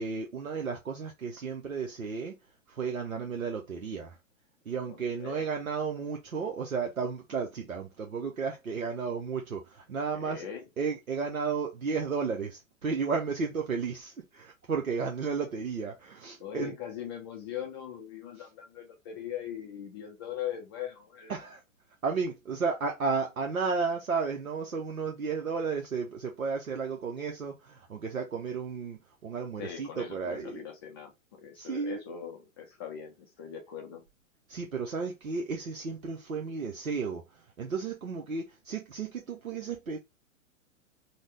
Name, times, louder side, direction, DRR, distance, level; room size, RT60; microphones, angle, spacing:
voice 1, 0.0-2.4 2.7-4.2 4.7-10.5 10.8-16.7 21.3-21.6 22.0-30.6 31.5-32.0 34.5-40.0, right 5 dB, 90° right, 0.7 m, -33 dB
voice 2, 4.9-5.4 10.1-10.7 16.4-21.3 29.6-34.0, left 9 dB, 20° left, 0.3 m, -40 dB
3.8 x 2.1 x 3.2 m
figure-of-eight pair, 105°, 40 cm